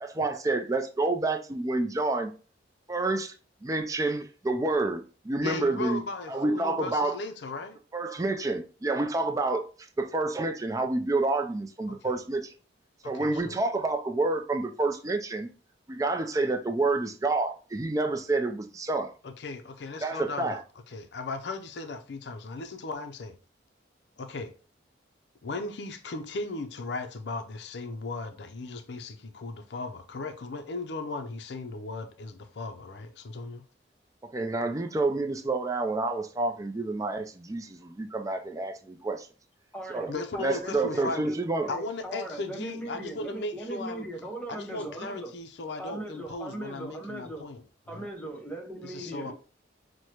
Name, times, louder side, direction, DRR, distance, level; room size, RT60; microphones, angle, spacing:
voice 1, 0.0-2.3 2.9-3.3 3.6-6.0 6.3-7.1 7.9-12.5 13.0-15.5 15.9-19.1 20.0-20.6 34.2-39.3 39.9-40.1 40.4-41.7, right 2 dB, 20° right, 0.4 m, -28 dB
voice 2, 5.4-7.8 11.9-12.2 13.0-13.6 19.2-20.6 20.9-23.4 24.2-24.5 25.4-33.6 40.1-41.3 41.7-44.1 44.5-48.1 48.8-49.3, left 3 dB, 65° left, 0.5 m, -37 dB
voice 3, 39.7-41.4 41.6-45.3 45.8-47.4 47.9-49.3, right 1 dB, 5° left, 0.7 m, -39 dB
6.2 x 2.1 x 2.9 m
head